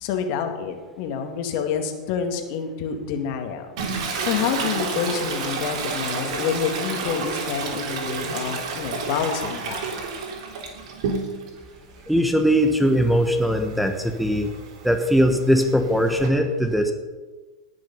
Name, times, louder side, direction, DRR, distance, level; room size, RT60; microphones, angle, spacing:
voice 1, 0.0-3.7 4.0-9.8, left 7 dB, 55° left, 5 dB, 2.0 m, -28 dB
Toilet flush, 3.8-11.6 12.0-16.3, right 4 dB, 60° right, 3.5 m, -31 dB
voice 2, 12.1-14.5 14.8-16.9, equal, ahead, 5 dB, 1.1 m, -20 dB
18.5 x 6.3 x 5.5 m, 1.3 s
hypercardioid pair, 110°, 4 cm